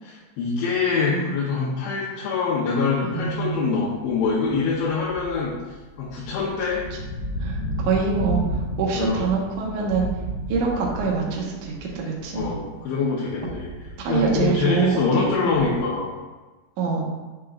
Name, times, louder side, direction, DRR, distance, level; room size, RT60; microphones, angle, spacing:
voice 1, 0.0-5.5 6.0-6.9 8.9-9.2 12.3-13.7 14.1-16.1, left 5 dB, 85° left, -7 dB, 3.4 m, -24 dB
voice 2, 3.0-3.7 7.4-8.4 8.8-10.1 10.5-12.5 14.0-15.7 16.8-17.0, right 5 dB, 75° right, -2 dB, 1.8 m, -25 dB
sound 1, 3.2-3.5 4.0-12.8 13.1-16.0, right 1 dB, 65° left, 1.9 m, -33 dB
8.5 x 6.4 x 2.5 m, 1.3 s
omnidirectional pair, 5.2 m